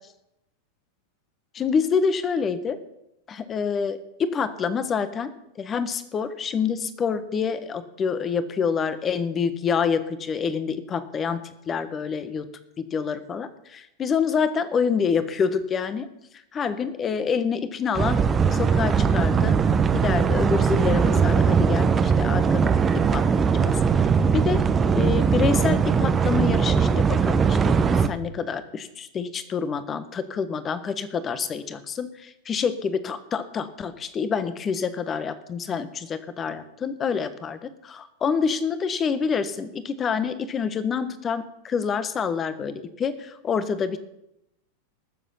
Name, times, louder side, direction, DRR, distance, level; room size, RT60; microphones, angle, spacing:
voice 1, 1.5-2.8 3.3-5.3 5.6-12.5 12.8-16.1 16.5-18.2 18.5-19.6 19.9-24.6 24.9-44.0, left 6 dB, 25° left, 13 dB, 1.3 m, -27 dB
sound 1, 17.9-28.1, right 6 dB, 20° right, 0.9 m, -20 dB
20.0 x 7.4 x 5.6 m, 0.85 s
figure-of-eight pair, 90°, 0 cm